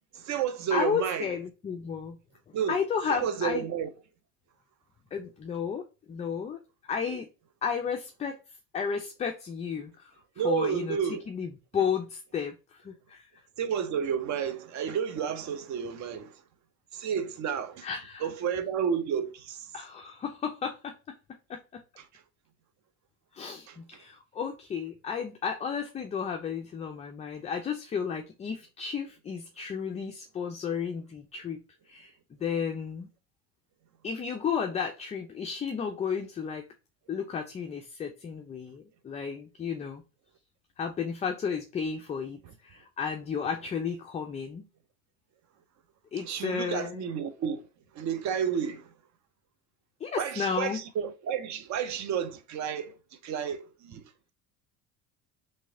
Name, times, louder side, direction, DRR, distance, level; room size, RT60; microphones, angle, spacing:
voice 1, 0.1-1.3 2.5-2.8 3.1-3.9 10.4-11.2 13.6-16.4 16.9-17.9 18.2-19.7 22.1-22.2 23.7-23.8 46.2-47.6 47.9-48.9 50.2-53.0 53.2-54.3, right 8 dB, 45° right, 0.7 m, -31 dB
voice 2, 0.7-2.2 2.7-3.7 5.1-7.3 7.6-8.4 8.7-10.1 10.4-11.0 11.3-13.3 17.8-18.3 19.7-20.9 21.5-21.8 23.3-31.6 31.9-33.1 34.0-36.6 37.1-40.0 40.8-44.6 46.1-47.1 50.0-50.8, left 6 dB, 20° left, 0.3 m, -33 dB
3.1 x 2.8 x 2.7 m
hypercardioid pair, 80°, 41 cm